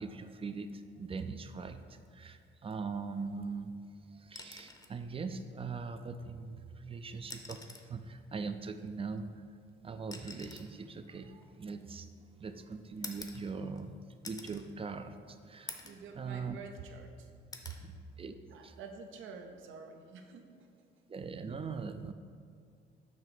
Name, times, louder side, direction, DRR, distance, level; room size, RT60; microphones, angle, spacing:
voice 1, 0.0-3.8 4.1-9.4 9.8-12.1 12.4-13.9 14.2-15.8 16.2-16.6 17.8-18.3 18.6-18.7 21.1-22.1, right 4 dB, 30° right, 9 dB, 0.4 m, -41 dB
sound 1, 4.4-5.0 6.4-6.5 7.2-8.0 9.1-12.2 13.0-13.9 14.2-14.7 15.1-15.2 15.7-16.1 16.5-17.1 17.5-17.8 19.3-19.5, left 3 dB, 20° left, 0.7 m, -48 dB
voice 2, 15.8-17.3 17.6-17.8 18.5-20.7, right 5 dB, 80° right, 4 dB, 0.7 m, -48 dB
7.2 x 2.9 x 6.0 m, 2.2 s
cardioid pair, 90°, 20 cm